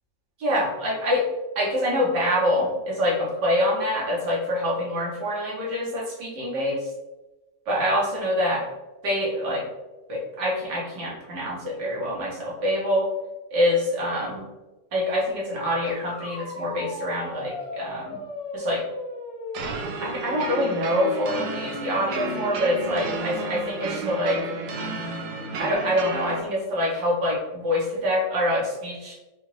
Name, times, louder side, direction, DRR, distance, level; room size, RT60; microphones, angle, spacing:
voice 1, 0.4-1.3 1.6-6.9 7.7-8.7 9.0-9.6 10.1-13.1 13.5-14.5 14.9-18.2 18.5-18.8 20.0-24.4 25.6-29.1, left 1 dB, 70° right, -4 dB, 1.7 m, -25 dB
sound 1, 15.9-25.8, left 3 dB, 85° left, 2.2 m, -37 dB
sound 2, 19.5-26.4, right 4 dB, 85° right, 1.3 m, -33 dB
5.2 x 2.4 x 3.1 m, 1.1 s
omnidirectional pair, 2.0 m